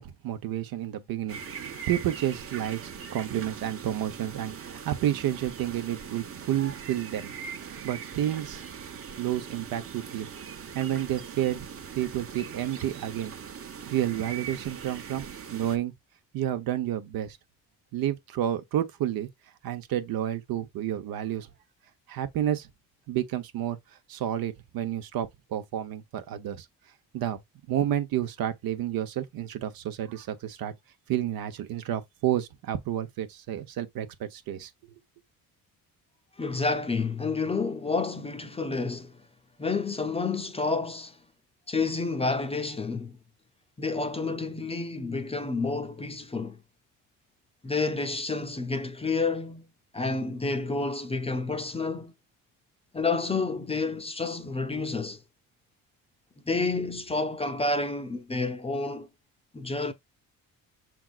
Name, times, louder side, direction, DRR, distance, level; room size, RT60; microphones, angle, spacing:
voice 1, 0.0-7.3 7.8-8.7 9.2-10.3 10.7-11.7 11.9-13.3 13.8-15.3 15.5-15.9 16.3-17.4 17.9-19.3 19.6-21.5 22.1-22.7 23.1-23.8 24.1-26.7 27.1-27.4 27.7-30.7 31.1-34.7, right 11 dB, 75° right, 1.0 m, -30 dB
sound 1, 1.3-15.8, right 7 dB, 40° right, 0.9 m, -41 dB
voice 2, 36.4-39.2 39.6-41.2 41.7-43.2 43.8-46.6 47.6-49.7 49.9-52.1 52.9-55.2 56.5-59.1 59.5-59.9, left 3 dB, 15° left, 0.6 m, -29 dB
6.1 x 3.5 x 2.4 m
cardioid pair, 120°, 36 cm